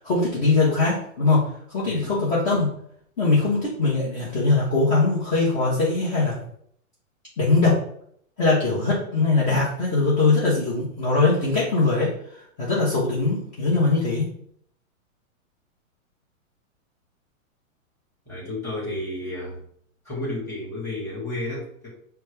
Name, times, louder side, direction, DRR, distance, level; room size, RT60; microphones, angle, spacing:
voice 1, 0.0-1.5 1.7-2.7 3.2-6.4 7.4-7.8 8.4-12.1 12.6-14.3, left 3 dB, 30° left, -8 dB, 1.1 m, -21 dB
voice 2, 18.3-19.6 20.0-21.9, left 1 dB, 5° left, -7 dB, 1.7 m, -32 dB
5.4 x 2.3 x 3.3 m, 0.66 s
hypercardioid pair, 145°, 42 cm